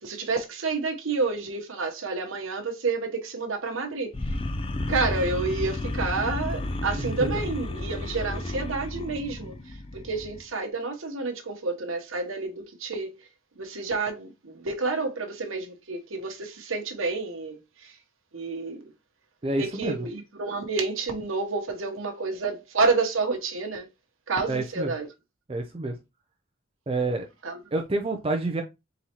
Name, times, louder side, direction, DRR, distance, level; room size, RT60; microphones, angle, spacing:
voice 1, 0.0-4.1 4.9-9.5 9.9-13.2 13.6-17.9 18.3-18.8 19.6-23.9 24.3-25.1 27.4-27.6, right 3 dB, 85° right, 1.0 m, -29 dB
sound 1, 4.1-10.4, left 2 dB, 25° left, 0.4 m, -32 dB
voice 2, 19.4-20.1 24.5-24.9 25.5-25.9 26.9-27.3 27.7-28.6, right 2 dB, 30° right, 0.5 m, -28 dB
4.2 x 3.9 x 2.9 m
head